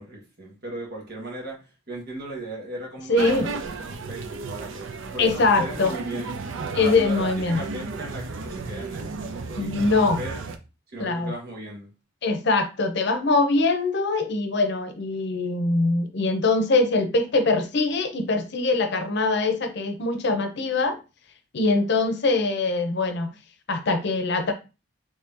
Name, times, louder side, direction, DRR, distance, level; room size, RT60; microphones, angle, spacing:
voice 1, 0.0-6.4 6.7-10.4 10.9-11.9, right 1 dB, 55° right, 1.5 m, -37 dB
voice 2, 3.1-3.5 5.2-5.9 6.7-7.6 9.6-10.2 11.0-11.3 12.2-21.0 21.5-23.3 23.7-24.5, left 3 dB, 60° left, 0.7 m, -23 dB
sound 1, 3.2-10.6, right 4 dB, 80° right, 0.5 m, -34 dB
3.2 x 2.7 x 3.6 m
head